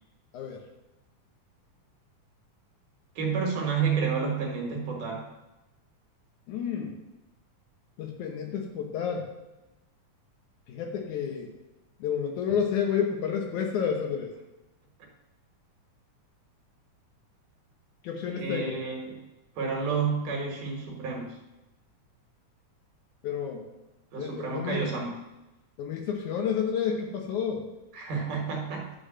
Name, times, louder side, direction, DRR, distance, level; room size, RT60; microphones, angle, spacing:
voice 1, 3.2-5.3 18.3-19.2 19.6-21.4 24.1-25.2 27.9-28.9, right 5 dB, 80° right, 0 dB, 3.1 m, -30 dB
voice 2, 6.5-7.0 8.0-9.3 10.7-11.5 12.0-14.3 18.0-18.8 23.2-23.6 24.2-24.8 25.8-27.7, left 7 dB, 75° left, 2 dB, 2.4 m, -30 dB
10.0 x 4.7 x 7.4 m, 0.99 s
omnidirectional pair, 3.6 m